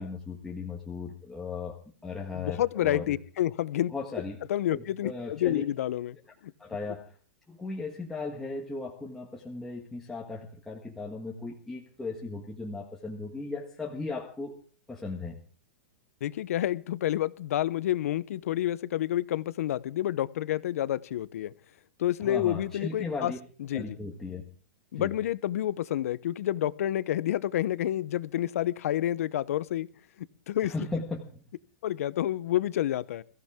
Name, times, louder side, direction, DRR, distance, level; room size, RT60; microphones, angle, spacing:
voice 1, 0.0-3.2 3.9-4.4 4.7-5.6 6.6-7.2 7.5-14.5 14.9-15.4 22.2-23.4 23.7-24.4 24.9-25.1 30.6-31.4, left 3 dB, 5° left, -2 dB, 1.7 m, -37 dB
voice 2, 2.3-3.9 4.5-6.2 6.4-6.5 16.2-21.5 22.0-23.3 23.7-23.8 24.9-29.9 30.2-30.7 31.8-33.2, left 12 dB, 70° left, 18 dB, 0.9 m, -29 dB
22.5 x 15.0 x 3.7 m, 0.41 s
supercardioid pair, 170°, 8 cm